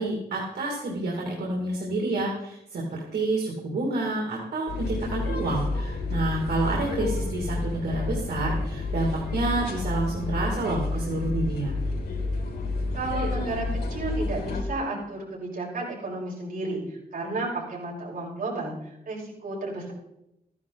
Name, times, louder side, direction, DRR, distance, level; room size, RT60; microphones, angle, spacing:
voice 1, 0.0-11.7, right 2 dB, 85° right, -2 dB, 2.6 m, -29 dB
sound 1, 4.7-14.6, left 3 dB, 85° left, 3.3 m, -30 dB
voice 2, 12.9-19.9, right 2 dB, 60° right, -5 dB, 5.6 m, -32 dB
14.5 x 11.0 x 4.1 m, 0.82 s
wide cardioid pair, 135°, 16 cm